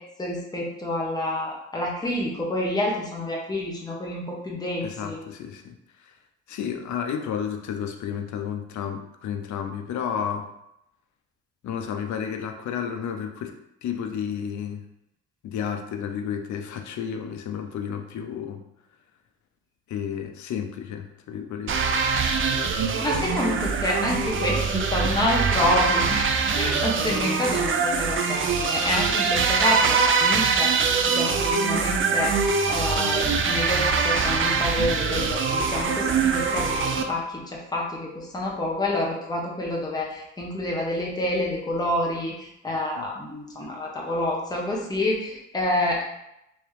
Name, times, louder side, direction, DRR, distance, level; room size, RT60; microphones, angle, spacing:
voice 1, 0.2-5.2 23.0-26.3 26.5-30.7 31.1-32.4 32.7-46.0, left 1 dB, 15° left, -3 dB, 1.0 m, -28 dB
voice 2, 4.8-6.1 6.5-10.5 11.6-13.5 13.8-14.8 15.4-18.6 19.9-21.8 43.0-43.1, left 8 dB, 70° left, 5 dB, 0.6 m, -32 dB
sound 1, 21.7-37.0, right 5 dB, 45° right, 0.5 m, -23 dB
3.5 x 2.9 x 3.3 m, 0.83 s
cardioid pair, 90°, 30 cm